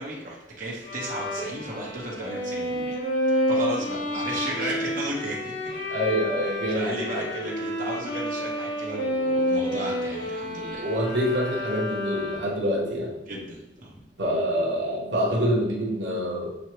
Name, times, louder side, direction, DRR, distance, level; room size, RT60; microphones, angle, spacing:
voice 1, 0.0-3.0 3.3-5.7 6.7-10.8 13.3-13.9, right 1 dB, 50° right, -4 dB, 1.0 m, -34 dB
Bowed string instrument, 0.8-12.7, equal, 80° left, 1.5 m, -29 dB
voice 2, 5.9-7.3 10.8-13.1 14.2-16.5, equal, 85° right, -3 dB, 0.9 m, -26 dB
6.2 x 2.2 x 3.0 m, 0.93 s
head